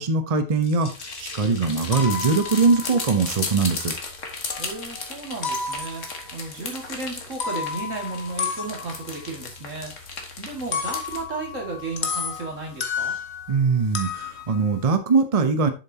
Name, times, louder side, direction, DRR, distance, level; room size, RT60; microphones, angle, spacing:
voice 1, 0.0-3.9 13.5-15.7, right 4 dB, 35° right, 9 dB, 0.8 m, -22 dB
sound 1, 0.6-11.2, left 4 dB, 75° left, 1.9 m, -36 dB
sound 2, 1.8-4.2 4.5-5.0 5.4-6.3 7.2-13.6 13.9-14.9, left 6 dB, 60° left, 1.4 m, -32 dB
voice 2, 4.6-13.2, right 3 dB, 75° right, 1 dB, 2.7 m, -34 dB
7.7 x 7.1 x 2.8 m, 0.31 s
omnidirectional pair, 1.3 m